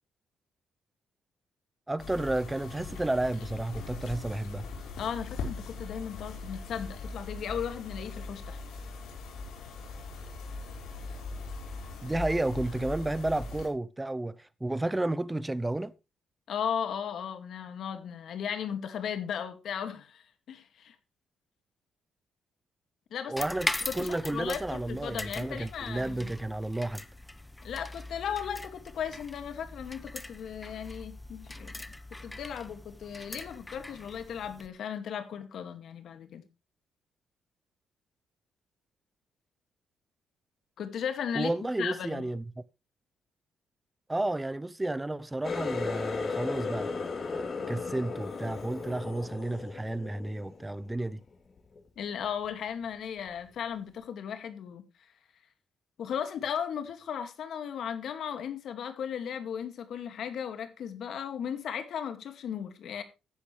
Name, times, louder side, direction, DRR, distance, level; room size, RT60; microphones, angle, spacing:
voice 1, 1.9-4.6 12.0-15.9 23.3-23.7 23.9-27.0 41.3-42.4 44.1-47.0 47.2-51.2, right 2 dB, 15° right, 0.8 m, -32 dB
sound 1, 2.0-13.7, left 3 dB, 85° left, 4.5 m, -40 dB
voice 2, 5.0-8.6 16.5-20.9 23.1-23.3 23.8-26.3 27.6-31.8 32.2-36.4 40.8-41.5 41.8-42.3 52.0-54.8 56.0-63.0, left 8 dB, 70° left, 2.2 m, -36 dB
sound 2, 23.4-34.7, left 1 dB, 10° left, 1.0 m, -41 dB
Water tap faucet, 45.4-50.9 51.3-51.8 52.2-52.5 53.3-53.4, left 4 dB, 45° left, 4.0 m, -35 dB
14.5 x 10.0 x 3.4 m
cardioid pair, 90°, 0 cm